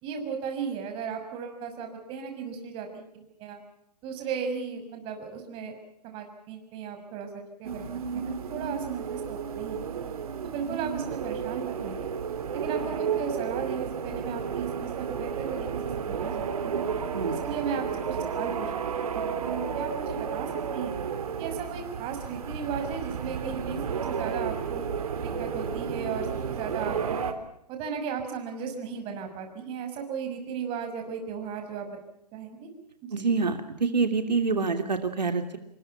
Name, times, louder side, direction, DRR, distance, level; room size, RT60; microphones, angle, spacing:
voice 1, 0.0-3.6 4.0-5.7 6.0-9.8 10.4-12.1 12.5-15.7 16.0-16.8 17.4-18.9 19.1-20.5 20.7-20.9 21.4-23.8 24.1-24.8 25.2-27.2 27.7-31.9 32.3-32.7 33.0-33.2, right 6 dB, 25° right, 5 dB, 6.1 m, -36 dB
sound 1, 7.6-27.3, right 7 dB, 60° right, 3.5 m, -32 dB
voice 2, 33.1-35.6, right 4 dB, 80° right, 7 dB, 3.0 m, -26 dB
27.5 x 23.0 x 5.8 m, 0.76 s
figure-of-eight pair, 135°, 21 cm